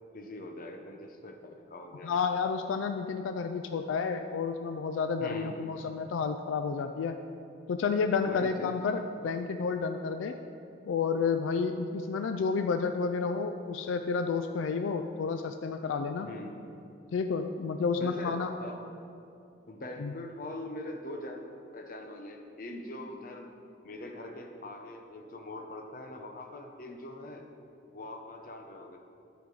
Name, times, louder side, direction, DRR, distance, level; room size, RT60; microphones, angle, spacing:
voice 1, 0.1-2.2 5.2-5.6 8.2-8.7 16.2-16.6 18.0-18.8 19.7-23.5 23.8-27.5 27.9-29.0, left 1 dB, 45° left, 3 dB, 0.7 m, -42 dB
voice 2, 2.0-7.2 7.7-10.4 10.9-16.3 17.1-18.5 20.0-20.1, left 5 dB, 80° left, 8 dB, 0.3 m, -30 dB
12.5 x 5.0 x 3.9 m, 2.6 s
head